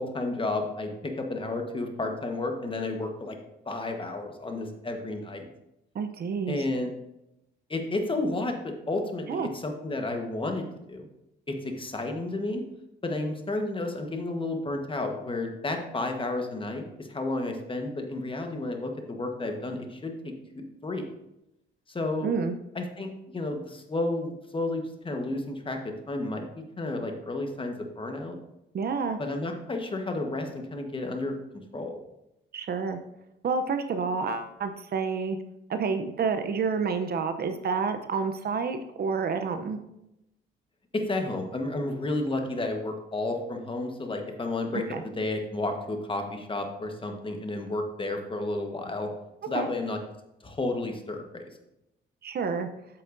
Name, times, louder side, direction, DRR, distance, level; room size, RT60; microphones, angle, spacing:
voice 1, 0.0-3.4 3.7-5.5 6.5-6.9 7.7-11.1 11.5-12.6 13.0-21.1 21.9-22.3 22.7-28.4 29.2-31.4 31.7-32.0 40.9-49.1 49.5-50.0 50.4-51.4, left 2 dB, 25° left, 4 dB, 1.2 m, -32 dB
voice 2, 5.9-6.6 9.3-9.5 22.2-22.5 28.7-29.2 32.5-33.0 33.4-35.4 35.7-39.8 44.9-45.0 49.5-49.7 52.2-52.7, right 5 dB, 50° right, 8 dB, 0.7 m, -29 dB
8.4 x 7.5 x 2.6 m, 0.88 s
cardioid pair, 90°, 20 cm